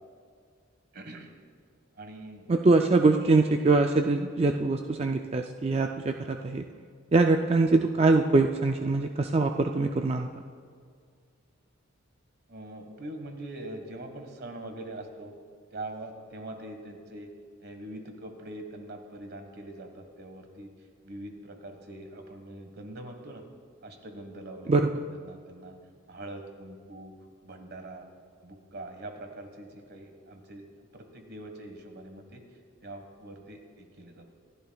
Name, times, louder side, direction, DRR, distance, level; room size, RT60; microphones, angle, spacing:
voice 1, 0.9-1.3 1.9-2.5 12.5-15.3 15.7-17.3 17.6-20.7 21.0-23.4 23.8-24.8 25.1-25.7 26.1-27.1 27.4-28.1 28.4-32.4 32.8-34.3, right 1 dB, 50° right, 5 dB, 1.5 m, -43 dB
voice 2, 2.5-6.6 7.1-10.3 24.7-24.9, right 3 dB, 30° right, 4 dB, 0.4 m, -23 dB
26.5 x 11.0 x 2.3 m, 2.1 s
head